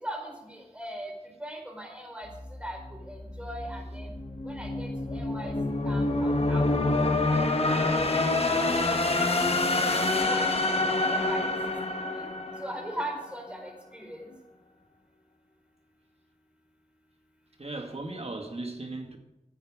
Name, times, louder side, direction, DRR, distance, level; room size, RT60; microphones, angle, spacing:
voice 1, 0.0-1.1 1.4-2.3 2.6-4.1 4.4-5.5 5.8-6.9 7.3-8.0 8.5-11.5 12.1-12.3 12.6-14.3, right 1 dB, 10° right, 1 dB, 4.2 m, -40 dB
sound 1, 2.3-13.3, left 2 dB, 50° left, 1.5 m, -27 dB
voice 2, 17.6-19.2, right 2 dB, 50° right, 2 dB, 2.3 m, -37 dB
14.5 x 8.9 x 5.0 m, 0.95 s
wide cardioid pair, 45°, 14 cm